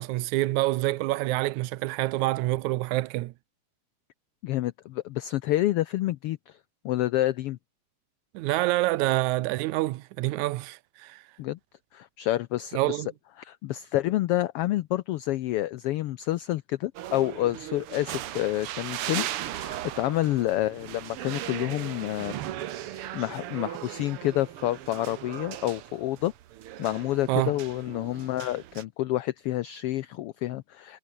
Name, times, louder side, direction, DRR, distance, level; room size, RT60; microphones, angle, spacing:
voice 1, 0.0-3.3 8.3-11.2 12.7-13.1 27.3-27.5, right 18 dB, 85° right, 2.1 m, -27 dB
voice 2, 4.4-6.6 6.8-7.6 11.4-11.6 11.9-13.0 13.4-22.4 22.9-26.3 26.8-31.0, left 15 dB, 85° left, 1.3 m, -28 dB
sound 1, 16.9-28.8, right 12 dB, 65° right, 1.6 m, -38 dB
omnidirectional pair, 3.3 m